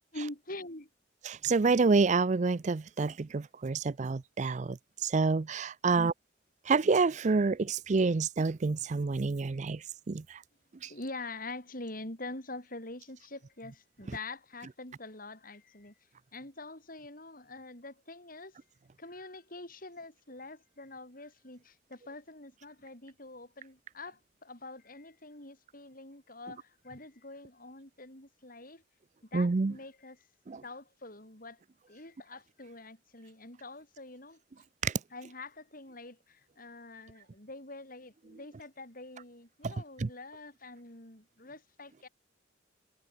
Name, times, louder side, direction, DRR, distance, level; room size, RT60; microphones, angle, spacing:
voice 1, 0.1-0.9 5.9-6.1 10.9-15.9 16.3-18.6 19.0-28.8 29.3-31.6 31.9-34.4 35.1-42.1, left 2 dB, 50° left, 6.3 m, -45 dB
voice 2, 1.3-4.8 5.0-6.1 6.7-9.8 10.1-10.2 10.8-10.9 29.3-29.7 30.5-30.6 34.8-34.9 39.6-39.7 40.0-40.1, right 4 dB, 40° right, 0.5 m, -28 dB
head